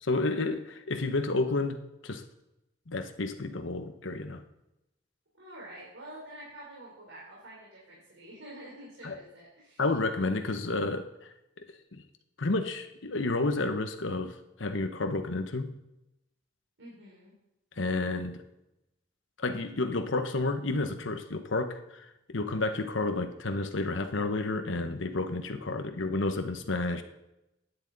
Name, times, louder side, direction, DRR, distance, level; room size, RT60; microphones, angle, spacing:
voice 1, 0.0-1.8 2.0-2.2 2.9-4.4 9.0-9.2 9.8-11.1 11.9-12.0 12.4-15.7 17.8-18.4 19.4-27.0, left 2 dB, 80° left, 7 dB, 1.0 m, -30 dB
voice 2, 5.3-9.8 16.8-17.3, right 1 dB, 85° right, -6 dB, 3.8 m, -47 dB
16.0 x 10.0 x 4.0 m, 0.91 s
head